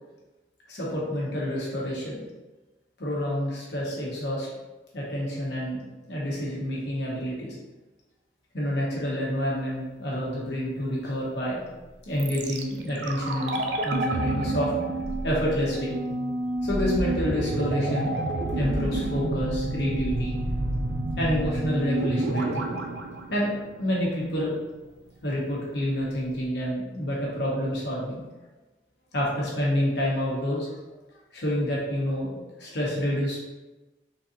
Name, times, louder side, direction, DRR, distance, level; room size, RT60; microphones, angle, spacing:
voice 1, 0.7-2.2 3.0-4.5 4.9-5.8 6.1-7.6 8.5-11.6 12.1-14.7 15.2-15.9 16.6-18.2 18.5-20.4 21.2-22.7 23.3-23.5 23.8-24.5 25.2-28.2 29.1-30.7 31.3-32.3 32.6-33.4, equal, 70° left, -5 dB, 1.1 m, -28 dB
sound 1, 12.2-24.2 24.4-24.5, right 2 dB, 75° right, 0.4 m, -29 dB
3.8 x 2.7 x 2.6 m, 1.1 s
head